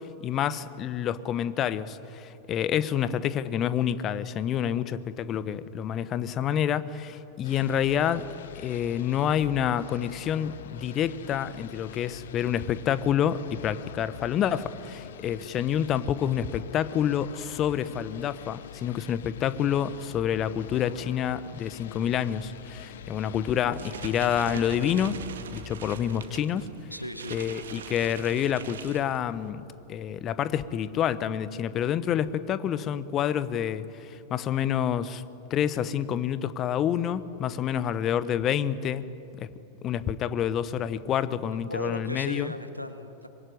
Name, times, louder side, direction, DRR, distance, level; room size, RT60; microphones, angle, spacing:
voice 1, 0.0-8.3 8.5-25.2 25.5-26.7 27.3-29.6 29.9-35.2 35.5-39.1 39.4-39.5 39.8-42.5, left 9 dB, 30° left, 15 dB, 1.1 m, -28 dB
sound 1, 7.4-26.4, left 10 dB, 60° left, 0.7 m, -45 dB
sound 2, 23.6-29.5, right 6 dB, 65° right, 2.1 m, -42 dB
voice 2, 26.9-27.4 41.7-43.3, equal, 90° right, 8 dB, 1.6 m, -36 dB
25.0 x 22.0 x 9.9 m, 3.0 s
figure-of-eight pair, 90°, 0 cm